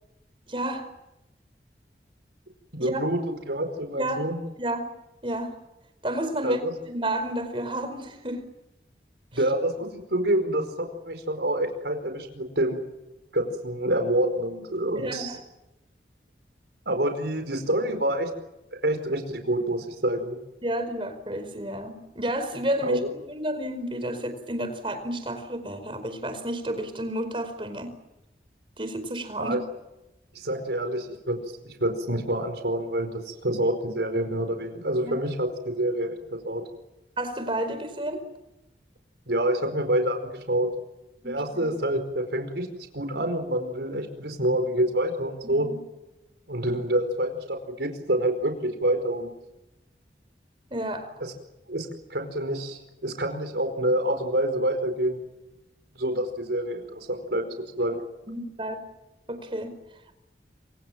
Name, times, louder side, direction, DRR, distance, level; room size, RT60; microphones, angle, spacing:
voice 1, 0.5-0.9 2.8-3.0 3.9-4.2 4.6-4.8 5.2-5.6 6.0-8.4 15.0-15.4 20.6-28.0 28.8-29.6 35.0-35.2 37.2-38.2 41.2-41.4 45.4-45.8 50.7-51.1 58.3-58.8 59.3-59.8, right 1 dB, 30° right, 9 dB, 4.8 m, -31 dB
voice 2, 2.7-4.4 6.4-6.7 9.3-12.8 13.3-15.4 16.9-18.3 18.8-20.4 22.8-23.1 29.4-29.6 30.3-31.4 31.8-36.6 39.3-40.7 41.2-42.7 42.9-45.7 46.5-49.3 51.2-51.3 51.7-55.2 56.0-57.5 57.8-58.0, right 1 dB, 80° right, 6 dB, 4.8 m, -27 dB
28.0 x 25.5 x 7.5 m, 0.96 s
head